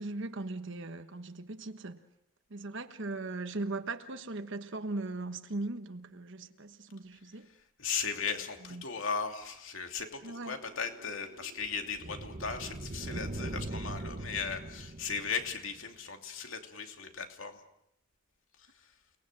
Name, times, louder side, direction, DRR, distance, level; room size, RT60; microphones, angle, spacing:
voice 1, 0.0-2.0 2.5-7.5 8.6-8.8 10.2-10.6, right 2 dB, 60° right, 1.3 m, -39 dB
voice 2, 7.8-17.6, left 5 dB, 65° left, 2.8 m, -37 dB
sound 1, 10.2-15.8, right 1 dB, 40° right, 1.1 m, -41 dB
30.0 x 20.0 x 7.6 m
head